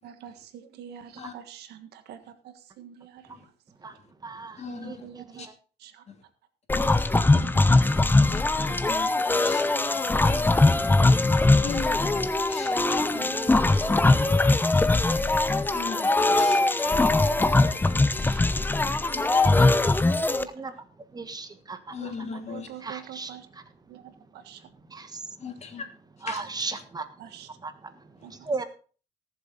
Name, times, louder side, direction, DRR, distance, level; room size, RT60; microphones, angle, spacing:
voice 1, 0.0-3.5 4.7-5.5 5.8-6.0 7.3-9.4 12.0-12.1 13.1-14.3 14.7-15.4 15.7-15.8 17.1-17.3 17.6-18.8 19.2-20.5 21.9-23.5 23.9-24.7 27.2-27.5 28.2-28.5, right 9 dB, 75° right, 1.6 m, -46 dB
voice 2, 3.7-5.5 19.4-19.5 20.5-22.4 22.8-23.6 24.0-25.8 26.2-27.2 27.6-28.6, right 3 dB, 25° right, 1.4 m, -38 dB
voice 3, 4.6-4.9 5.4-5.5 6.1-6.2 8.3-8.4 8.9-10.4 11.6-13.4 15.7-17.1 17.5-17.9 19.1-19.5 21.9-22.7 25.4-25.9 26.3-26.4, left 5 dB, 40° left, 2.7 m, -39 dB
sound 1, 6.7-20.4, left 2 dB, 10° left, 0.8 m, -21 dB
18.5 x 7.3 x 3.9 m
cardioid pair, 110°, 17 cm